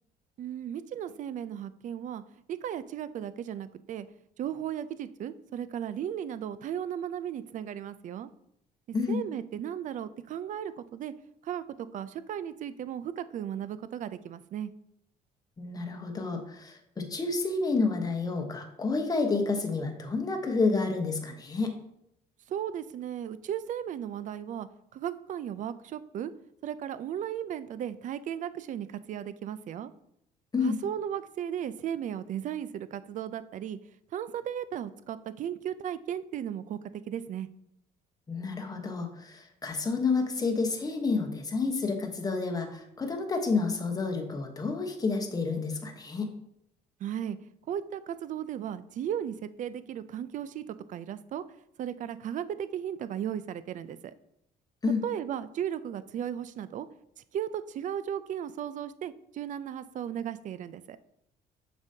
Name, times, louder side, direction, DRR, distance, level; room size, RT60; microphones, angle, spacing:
voice 1, 0.4-2.2 2.5-4.1 4.4-8.3 9.1-11.1 11.4-14.7 22.5-24.7 24.9-26.3 26.6-29.9 30.6-33.8 34.1-37.5 47.0-47.4 47.7-51.4 51.8-54.1 55.0-56.9 57.3-61.0, right 9 dB, 50° right, 14 dB, 0.4 m, -35 dB
voice 2, 15.6-21.8 30.5-30.8 38.3-46.3 54.8-55.0, left 4 dB, 20° left, 3 dB, 1.0 m, -29 dB
6.9 x 5.3 x 2.8 m, 0.76 s
cardioid pair, 110°, 17 cm